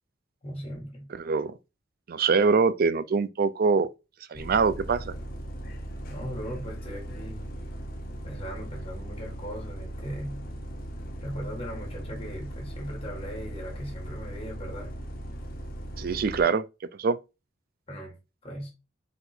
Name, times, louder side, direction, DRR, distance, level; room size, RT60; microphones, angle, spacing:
voice 1, 0.4-1.1 6.1-7.5 8.2-10.4 11.2-14.9 17.9-18.2 18.4-18.7, equal, 30° left, 1.6 m, -38 dB
voice 2, 1.2-1.5 2.1-3.9 4.3-5.1 16.0-16.6 17.0-17.2, right 5 dB, 50° right, 0.4 m, -24 dB
Bus, 4.3-16.4, right 1 dB, 50° left, 0.8 m, -38 dB
4.0 x 2.6 x 4.3 m
head